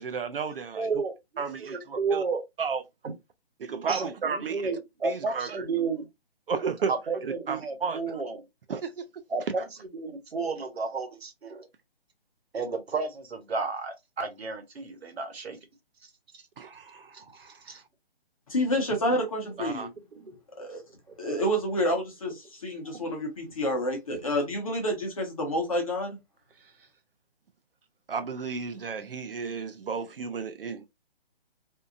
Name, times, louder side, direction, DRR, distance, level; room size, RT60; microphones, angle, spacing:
voice 1, 0.0-1.0 1.4-2.2 2.6-2.8 3.6-4.6 5.0-5.7 6.5-6.9 7.2-8.2 8.7-9.1 16.6-17.7 19.6-19.9 28.1-30.9, right 5 dB, 65° right, 0.5 m, -33 dB
voice 2, 0.8-2.4 3.0-3.1 3.9-6.1 6.9-8.4 9.3-9.6 9.9-11.7 12.5-15.6 16.3-16.4 17.1-17.2 17.7-17.8 20.1-20.4 22.8-23.0, right 4 dB, 80° right, 1.1 m, -32 dB
voice 3, 18.5-19.9 20.6-20.8 21.2-26.2, equal, 35° left, 0.9 m, -29 dB
2.7 x 2.4 x 2.5 m
hypercardioid pair, 175°, 31 cm